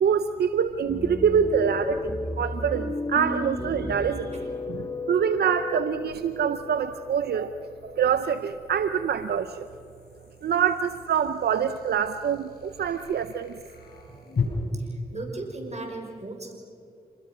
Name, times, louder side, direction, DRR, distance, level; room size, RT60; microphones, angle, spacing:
voice 1, 0.0-4.3 4.7-9.7 10.4-13.6, right 7 dB, 85° right, 11 dB, 0.7 m, -25 dB
sound 1, 0.8-0.9 4.3-14.4, left 6 dB, 75° left, 5.3 m, -40 dB
sound 2, 0.9-8.4, left 2 dB, 25° left, 2.8 m, -34 dB
voice 2, 14.7-16.5, right 2 dB, 45° right, 3 dB, 5.9 m, -37 dB
27.5 x 20.5 x 6.2 m, 2.6 s
cardioid pair, 45°, 16 cm